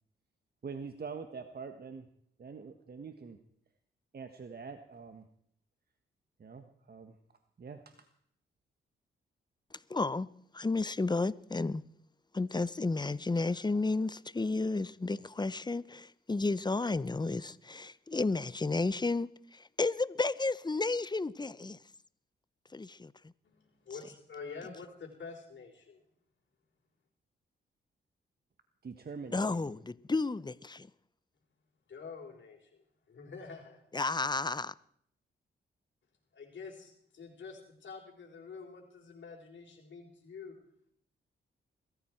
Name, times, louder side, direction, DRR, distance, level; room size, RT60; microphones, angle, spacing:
voice 1, 0.6-2.1 2.4-3.4 4.1-5.3 6.4-7.1 7.6-7.9 28.8-29.7, right 5 dB, 45° right, 1.5 m, -44 dB
voice 2, 9.9-10.3 10.5-11.8 12.3-21.8 22.7-23.1 29.3-30.9 33.9-34.7, left 3 dB, 20° left, 0.8 m, -32 dB
voice 3, 23.4-26.0 31.9-33.8 36.3-40.5, left 5 dB, 60° left, 4.1 m, -47 dB
22.5 x 14.0 x 4.5 m
supercardioid pair, 50°, 21 cm